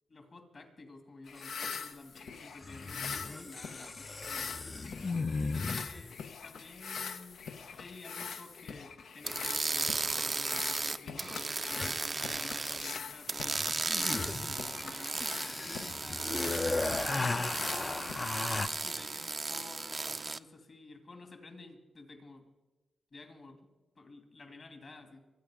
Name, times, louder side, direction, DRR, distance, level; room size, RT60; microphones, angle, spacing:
voice 1, 0.1-4.5 5.4-7.5 7.7-22.4 23.1-25.2, left 3 dB, 45° left, 5 dB, 2.6 m, -52 dB
sound 1, 1.3-18.8, left 6 dB, 80° left, 0.9 m, -43 dB
sound 2, 1.4-1.5 2.6-6.1 9.6-9.7 10.5-10.9 11.2-11.3 11.5-13.0 13.5-18.7, left 3 dB, 30° left, 0.6 m, -36 dB
sound 3, 9.2-13.0 13.3-20.4, right 3 dB, 30° right, 0.5 m, -35 dB
25.5 x 9.3 x 5.1 m, 1.1 s
cardioid pair, 95°, 0 cm